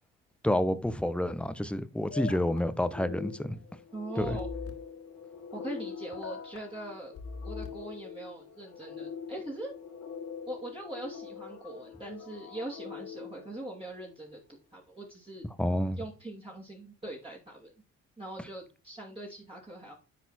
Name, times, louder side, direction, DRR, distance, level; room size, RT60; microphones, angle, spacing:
voice 1, 0.4-3.6 4.2-4.4 15.6-16.0, left 1 dB, 5° left, 0.8 m, -29 dB
sound 1, 2.1-2.6 4.2-4.7 6.2-6.6 7.2-7.7, left 3 dB, 50° left, 2.0 m, -39 dB
sound 2, 2.9-14.2, left 6 dB, 90° left, 2.1 m, -44 dB
voice 2, 3.9-4.5 5.5-7.1 7.4-9.8 10.5-15.4 16.0-17.7 18.2-19.9, right 1 dB, 20° right, 2.7 m, -42 dB
10.0 x 4.3 x 4.2 m
cardioid pair, 90°, 30 cm